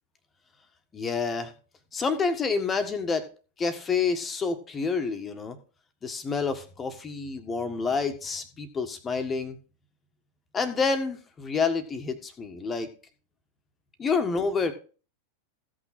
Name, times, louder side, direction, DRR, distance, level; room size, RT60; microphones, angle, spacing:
voice 1, 0.9-1.5 1.9-3.3 3.6-5.6 6.0-9.6 10.5-12.9 14.0-14.7, left 4 dB, 20° left, 8 dB, 1.6 m, -28 dB
15.5 x 6.2 x 4.3 m, 0.36 s
figure-of-eight pair, 90°, 0 cm